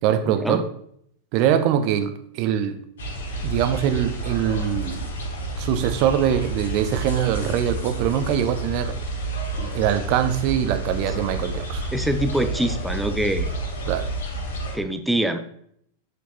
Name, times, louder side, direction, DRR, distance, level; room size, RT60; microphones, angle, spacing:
voice 1, 0.0-0.6 1.3-2.8 3.4-5.1 5.6-8.9 9.6-11.9 13.9-14.1, right 9 dB, 45° right, 9 dB, 0.8 m, -23 dB
sound 1, 3.0-14.7, right 2 dB, 65° left, 1.5 m, -30 dB
voice 2, 11.9-13.5 14.7-15.4, right 1 dB, 5° right, 8 dB, 0.7 m, -24 dB
8.2 x 6.3 x 3.0 m, 0.68 s
figure-of-eight pair, 90°, 0 cm